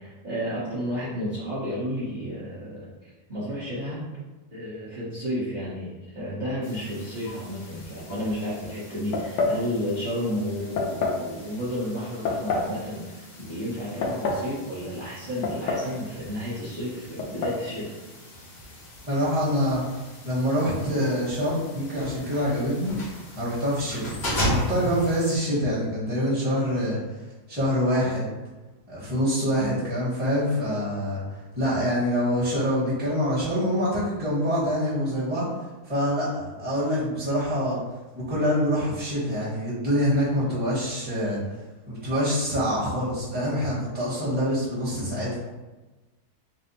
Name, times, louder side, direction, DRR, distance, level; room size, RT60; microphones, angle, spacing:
voice 1, 0.0-4.0 4.5-17.9, equal, 35° right, -11 dB, 0.9 m, -32 dB
sound 1, 6.6-25.4, equal, 50° left, 1.0 m, -37 dB
sound 2, 9.1-9.6 10.8-11.2 12.3-12.7 13.8-14.5 15.4-16.2 17.2-17.6, left 3 dB, 90° left, 1.2 m, -27 dB
voice 2, 19.1-19.8 20.2-27.0 27.5-28.3 28.9-31.2 31.5-35.4 35.8-37.8 38.1-41.4 41.9-45.3, equal, 5° right, -9 dB, 1.1 m, -25 dB
3.4 x 2.0 x 4.1 m, 1.2 s
omnidirectional pair, 1.7 m